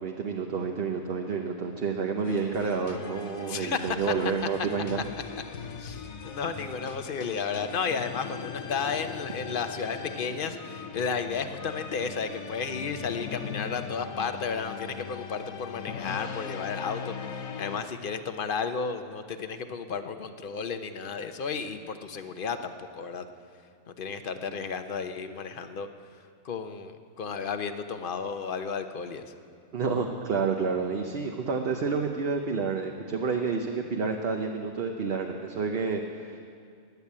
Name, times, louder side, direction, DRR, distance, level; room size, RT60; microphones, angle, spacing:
voice 1, 0.0-5.1 24.5-24.6 29.7-36.4, right 5 dB, 50° right, 3 dB, 1.0 m, -29 dB
sound 1, 2.2-17.8, left 6 dB, 75° left, 1.3 m, -40 dB
voice 2, 3.5-4.1 5.8-23.2 23.9-25.9 26.4-29.3, left 5 dB, 45° left, 9 dB, 0.8 m, -33 dB
16.5 x 10.5 x 8.5 m, 2.4 s
omnidirectional pair, 1.4 m